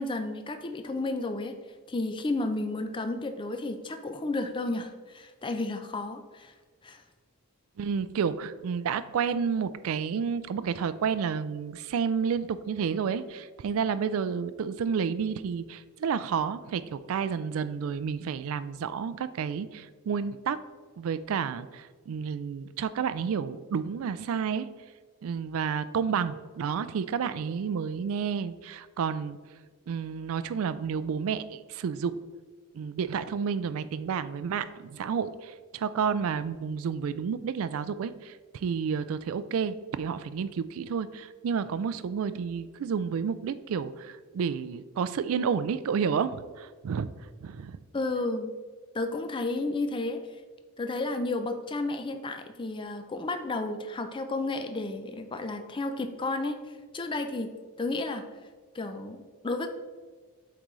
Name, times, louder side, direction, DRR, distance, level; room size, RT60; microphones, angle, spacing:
voice 1, 0.0-1.5 1.9-6.5 6.8-7.0 47.9-48.5 48.9-50.2 50.8-56.6 56.9-57.5 57.8-58.2 58.7-59.7, left 2 dB, 20° left, 7 dB, 0.4 m, -32 dB
voice 2, 7.8-20.6 21.0-24.7 25.2-29.4 29.9-32.1 32.7-47.1 47.4-47.8, right 6 dB, 65° right, 14 dB, 0.3 m, -30 dB
8.1 x 3.8 x 3.1 m, 1.4 s
head